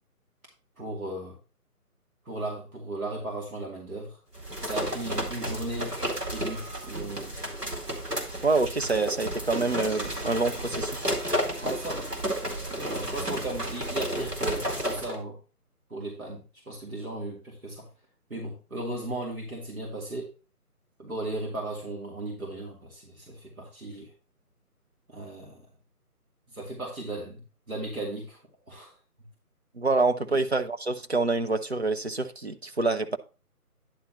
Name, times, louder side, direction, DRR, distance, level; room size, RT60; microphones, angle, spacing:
voice 1, 0.8-1.4 2.2-4.2 4.6-5.9 6.3-7.3 11.6-12.1 12.6-15.4 15.9-17.8 18.3-20.3 21.0-24.1 25.1-25.6 26.5-28.4 28.7-28.9 30.3-30.4, right 2 dB, 65° right, 2.8 m, -36 dB
sound 1, 4.3-15.2, equal, 90° right, 2.5 m, -32 dB
voice 2, 8.4-11.1 29.8-33.2, right 3 dB, 45° right, 0.6 m, -26 dB
10.0 x 4.1 x 5.0 m
figure-of-eight pair, 155°, 46 cm